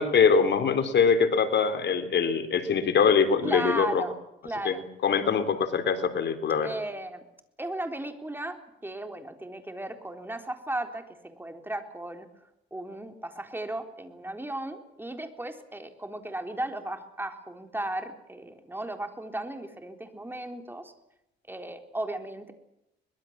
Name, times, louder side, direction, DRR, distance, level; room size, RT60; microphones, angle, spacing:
voice 1, 0.0-4.0 4.6-6.7, left 6 dB, 60° left, 9 dB, 3.4 m, -23 dB
voice 2, 3.4-4.1 4.4-4.8 6.6-7.2 7.6-12.3 12.7-20.9 21.5-22.5, right 1 dB, 10° right, 6 dB, 3.9 m, -35 dB
23.5 x 21.0 x 7.5 m, 0.86 s
cardioid pair, 90°, 20 cm